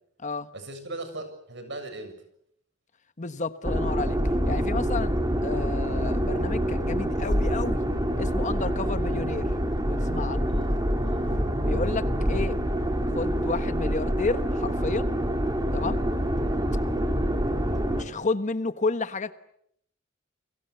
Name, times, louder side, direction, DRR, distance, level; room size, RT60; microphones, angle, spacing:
voice 1, 0.5-2.2 10.5-10.7 11.0-11.3, right 2 dB, 60° right, 7.4 m, -39 dB
voice 2, 3.2-4.2 4.5-7.8 8.2-9.5 9.9-10.5 11.6-12.6 13.1-15.1 15.7-16.0 18.0-19.3, left 3 dB, 35° left, 1.2 m, -31 dB
sound 1, 3.6-18.0, equal, 20° right, 4.1 m, -26 dB
30.0 x 23.5 x 8.2 m
head